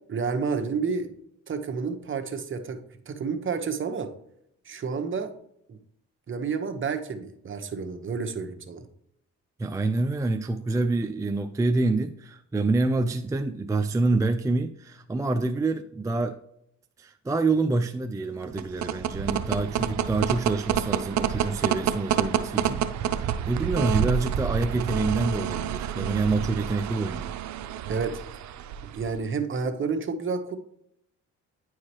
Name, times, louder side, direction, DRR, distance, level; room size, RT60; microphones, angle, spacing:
voice 1, 0.1-1.1 1.5-2.8 3.1-4.1 4.6-5.3 5.7-5.8 6.3-8.8 27.9-28.2 28.9-30.6, right 5 dB, 40° right, 6 dB, 1.0 m, -30 dB
voice 2, 9.6-16.4 17.0-27.3, right 3 dB, 10° right, 7 dB, 0.4 m, -27 dB
sound 1, 18.4-29.2, right 10 dB, 65° right, 0.6 m, -28 dB
9.5 x 4.8 x 3.0 m, 0.74 s
cardioid pair, 90°, 30 cm